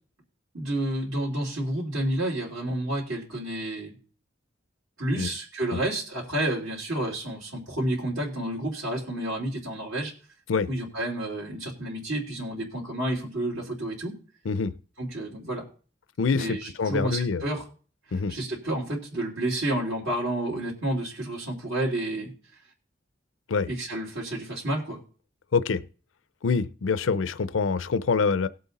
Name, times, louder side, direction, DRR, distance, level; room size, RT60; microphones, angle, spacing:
voice 1, 0.5-3.9 5.0-10.1 10.7-14.2 15.0-15.7 16.3-17.6 18.3-22.3 23.7-25.0, right 1 dB, 90° right, -4 dB, 3.5 m, -30 dB
voice 2, 16.2-17.4 18.1-18.3 23.5-23.7 25.5-25.8 26.4-28.5, left 5 dB, 85° left, 15 dB, 0.6 m, -25 dB
17.5 x 7.7 x 4.1 m, 0.39 s
head